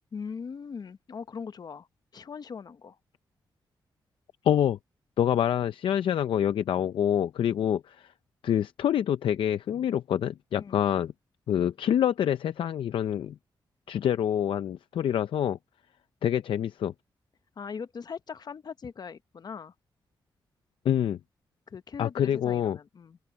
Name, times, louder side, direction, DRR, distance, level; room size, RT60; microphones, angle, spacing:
voice 1, 0.1-1.9 2.1-3.0 7.4-7.6 10.6-10.8 17.6-19.7 21.7-23.2, left 6 dB, 55° left, 0.9 m, -40 dB
voice 2, 4.4-4.8 5.2-8.1 8.4-11.1 11.5-13.4 13.9-15.6 16.2-16.9 20.8-21.2 22.0-22.8, left 10 dB, 85° left, 0.5 m, -26 dB
open air
cardioid pair, 95°, 9 cm